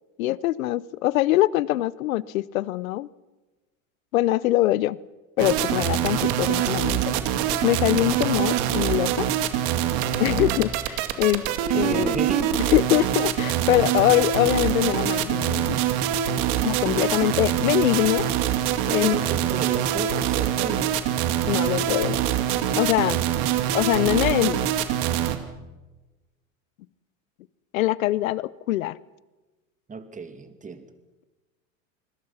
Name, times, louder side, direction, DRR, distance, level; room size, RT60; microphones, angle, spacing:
voice 1, 0.2-3.1 4.1-5.0 5.4-7.2 7.6-9.3 10.2-11.4 11.7-12.2 12.7-15.8 16.6-18.2 18.9-19.2 21.5-22.2 22.8-23.2 23.7-24.6 27.7-29.0, left 16 dB, 80° left, 22 dB, 0.8 m, -23 dB
sound 1, 5.4-25.4, right 10 dB, 60° right, 2.3 m, -24 dB
voice 2, 11.5-12.6 18.9-21.0 23.4-24.0 29.9-30.9, right 4 dB, 20° right, 9 dB, 2.3 m, -33 dB
27.5 x 21.0 x 5.8 m, 1.1 s
hypercardioid pair, 105°, 41 cm